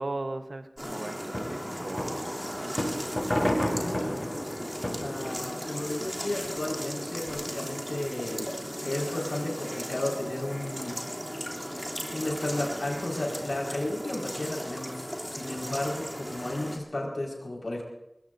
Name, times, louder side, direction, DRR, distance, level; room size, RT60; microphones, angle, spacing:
voice 1, 0.0-2.9, right 2 dB, 75° right, 8 dB, 0.9 m, -38 dB
sound 1, 0.8-16.8, equal, 5° right, 2.9 m, -36 dB
sound 2, 1.3-6.5 7.0-7.1 7.3-7.4, equal, 25° left, 7.2 m, -32 dB
voice 2, 3.7-8.5 8.8-11.0 11.7-17.8, left 1 dB, 90° left, -2 dB, 4.8 m, -34 dB
25.0 x 20.5 x 2.6 m, 0.87 s
wide cardioid pair, 50°, 0 cm